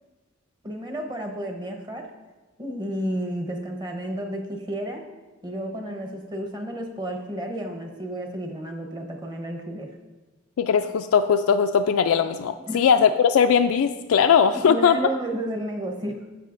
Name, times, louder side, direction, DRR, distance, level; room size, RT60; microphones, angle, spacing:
voice 1, 0.6-2.1 2.6-5.1 5.4-9.9 12.6-12.8 14.7-16.2, right 1 dB, 20° right, 3 dB, 0.9 m, -32 dB
voice 2, 10.6-15.0, left 7 dB, 90° left, 8 dB, 0.3 m, -19 dB
13.0 x 7.9 x 2.6 m, 1.2 s
head